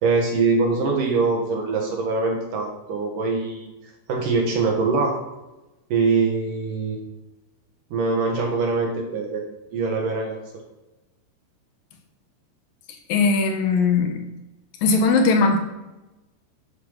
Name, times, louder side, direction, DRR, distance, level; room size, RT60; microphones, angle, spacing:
voice 1, 0.0-3.7 4.1-5.2 5.9-7.0 7.9-9.4 9.7-10.4, right 4 dB, 60° right, 1 dB, 2.7 m, -23 dB
voice 2, 13.1-14.2 14.8-15.6, left 4 dB, 65° left, 4 dB, 2.6 m, -19 dB
12.0 x 7.7 x 5.7 m, 1.0 s
omnidirectional pair, 5.1 m